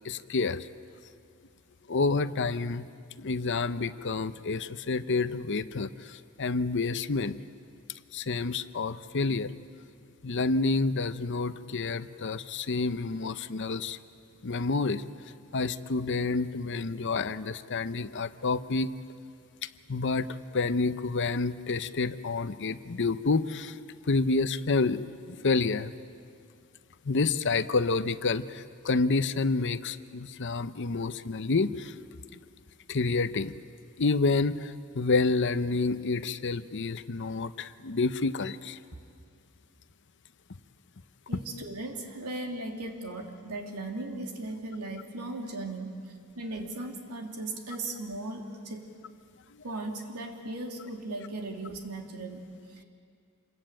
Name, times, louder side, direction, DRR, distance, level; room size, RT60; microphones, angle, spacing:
voice 1, 0.0-0.7 1.9-2.9 3.2-7.4 8.1-9.5 10.2-14.0 14.4-15.0 15.5-18.9 19.6-23.8 24.1-25.0 25.3-25.9 27.0-31.9 32.9-33.5 34.0-38.8, left 3 dB, 55° left, 13 dB, 0.8 m, -29 dB
voice 2, 41.3-46.0 46.4-48.9 49.6-52.8, right 2 dB, 85° right, 2 dB, 3.0 m, -37 dB
27.0 x 22.0 x 9.0 m, 2.3 s
head